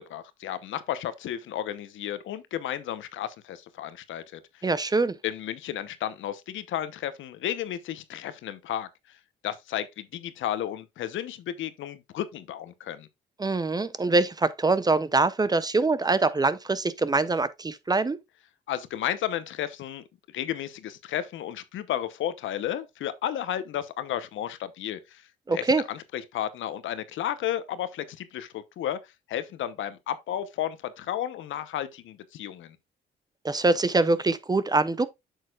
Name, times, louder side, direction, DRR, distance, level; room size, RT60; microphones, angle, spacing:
voice 1, 0.0-4.7 5.2-8.9 9.4-13.1 18.7-20.0 20.3-25.2 25.5-29.0 29.3-32.8, left 11 dB, 75° left, 0.8 m, -33 dB
voice 2, 4.6-5.2 13.4-18.2 25.5-25.8 33.4-35.1, right 3 dB, 20° right, 0.5 m, -24 dB
7.9 x 6.5 x 2.3 m
cardioid pair, 90°, 20 cm